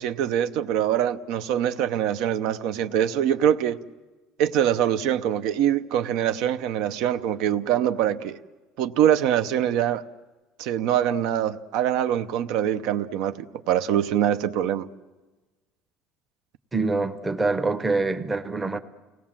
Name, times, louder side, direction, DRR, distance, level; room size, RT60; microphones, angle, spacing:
voice 1, 0.0-3.8 4.4-8.4 8.8-10.0 10.6-14.9, right 10 dB, 65° right, 0.7 m, -24 dB
voice 2, 16.7-18.8, right 3 dB, 10° right, 0.8 m, -25 dB
30.0 x 19.0 x 7.4 m
cardioid pair, 175°, 0 cm